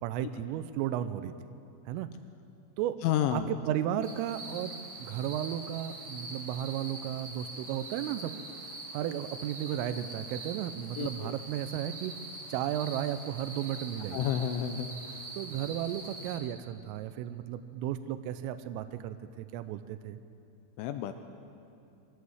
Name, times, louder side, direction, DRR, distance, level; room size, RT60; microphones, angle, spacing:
voice 1, 0.0-1.3 1.9-2.1 2.8-3.0 3.3-4.7 5.0-8.3 8.9-12.1 12.5-14.3 15.4-20.2, right 11 dB, 85° right, 10 dB, 3.2 m, -34 dB
voice 2, 3.0-3.5 11.0-11.3 14.1-15.2 20.8-21.2, left 10 dB, 80° left, 8 dB, 3.0 m, -31 dB
sound 1, 4.0-16.4, right 2 dB, 25° right, 2.6 m, -44 dB
22.5 x 16.5 x 7.9 m, 2.6 s
omnidirectional pair, 5.9 m